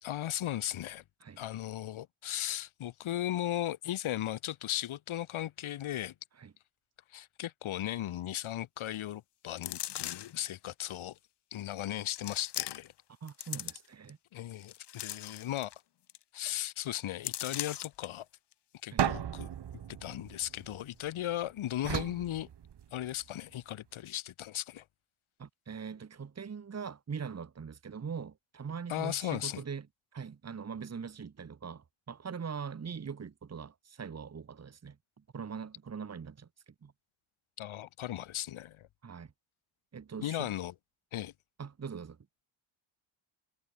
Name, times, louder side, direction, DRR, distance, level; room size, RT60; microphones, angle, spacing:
voice 1, 0.0-1.0 1.4-6.1 7.1-11.2 11.5-12.9 14.3-15.7 16.3-18.3 18.8-19.5 20.0-22.5 22.9-24.8 28.9-29.6 37.6-38.9 40.2-40.7 41.1-41.3, left 12 dB, 90° left, 3.1 m, -36 dB
sound 1, 9.6-10.4 11.2-11.3 12.2-13.0 13.3-14.1 14.6-15.8 16.1-16.2 16.5-16.7 17.2-18.1 18.5-18.6, left 11 dB, 60° left, 1.3 m, -39 dB
voice 2, 13.2-14.2 18.9-19.1 25.4-29.9 30.1-36.9 39.0-39.3 39.9-40.5 41.6-42.2, right 6 dB, 35° right, 2.6 m, -42 dB
sound 2, 19.0-21.2 21.8-23.2, right 9 dB, 60° right, 3.8 m, -35 dB
wide cardioid pair, 145°, 47 cm